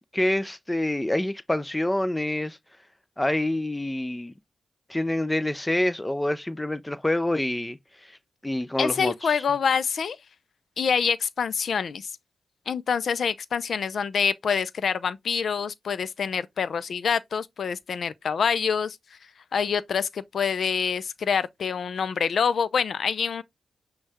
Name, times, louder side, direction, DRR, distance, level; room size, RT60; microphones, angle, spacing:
voice 1, 0.1-2.6 3.2-4.3 4.9-7.8 8.4-9.3, left 1 dB, 15° left, 0.6 m, -26 dB
voice 2, 8.8-10.2 10.8-12.1 12.7-19.0 19.5-23.4, left 6 dB, 65° left, 0.4 m, -26 dB
6.1 x 2.3 x 3.4 m
cardioid pair, 60°, 0 cm